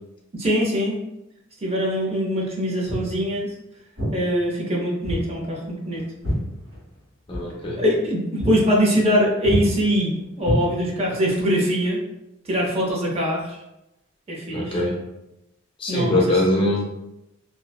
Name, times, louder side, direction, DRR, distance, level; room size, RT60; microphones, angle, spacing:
voice 1, 0.3-1.0 1.6-3.5 4.1-6.0 7.8-12.0 12.4-13.6 14.3-14.8 15.9-16.4, equal, 30° right, -3 dB, 0.5 m, -23 dB
Walk footsteps, 2.8-3.1 4.0-4.2 5.0-5.3 5.6-7.0 7.3-7.5 7.9-8.1 8.4-8.6 8.9-9.2 9.4-9.7 10.4-11.1, equal, 60° right, 1.4 m, -26 dB
voice 2, 7.3-7.8 14.5-15.0 15.8-16.9, left 1 dB, 25° left, -2 dB, 0.4 m, -22 dB
2.5 x 2.2 x 2.2 m, 0.90 s
head